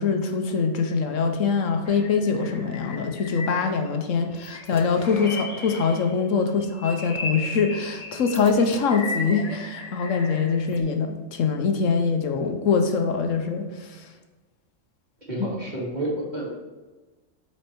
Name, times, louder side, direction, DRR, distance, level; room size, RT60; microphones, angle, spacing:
voice 1, 0.0-14.1, left 5 dB, 85° left, 5 dB, 1.2 m, -24 dB
sound 1, 1.9-4.0 4.3-6.2 6.6-10.8, left 3 dB, 35° left, 0.8 m, -36 dB
voice 2, 15.3-16.5, right 1 dB, 35° right, -5 dB, 2.2 m, -29 dB
8.3 x 4.5 x 4.5 m, 1.3 s
omnidirectional pair, 1.3 m